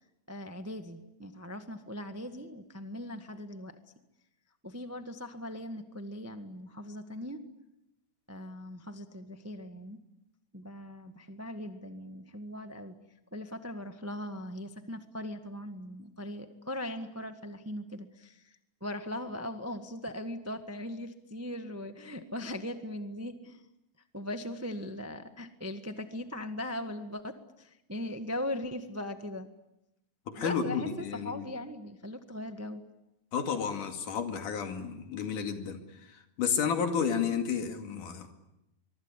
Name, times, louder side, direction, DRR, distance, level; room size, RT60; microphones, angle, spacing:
voice 1, 0.3-3.8 4.6-7.4 8.3-10.0 10.5-12.9 13.3-18.5 18.8-23.6 24.1-29.5 30.4-32.8, left 1 dB, 20° right, 7 dB, 0.4 m, -39 dB
voice 2, 30.3-31.5 33.3-35.8 36.4-38.3, left 6 dB, 80° left, 6 dB, 3.8 m, -31 dB
25.0 x 23.5 x 9.9 m, 0.89 s
omnidirectional pair, 3.6 m